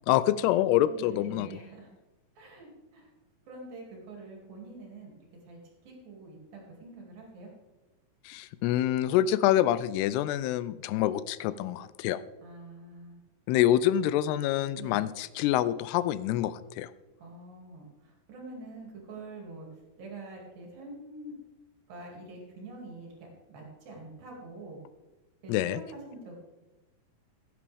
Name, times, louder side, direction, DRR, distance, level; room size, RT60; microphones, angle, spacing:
voice 1, 0.1-1.6 8.3-12.2 13.5-16.9 25.5-25.8, left 12 dB, 90° left, 16 dB, 2.6 m, -26 dB
voice 2, 0.8-1.9 2.4-3.1 3.5-5.1 5.5-7.5 12.4-13.2 14.8-15.0 17.2-19.7 20.0-21.3 21.9-23.1 23.5-24.8 25.4-26.4, right 2 dB, 65° right, -1 dB, 4.1 m, -46 dB
15.5 x 9.9 x 3.5 m, 1.1 s
omnidirectional pair, 4.6 m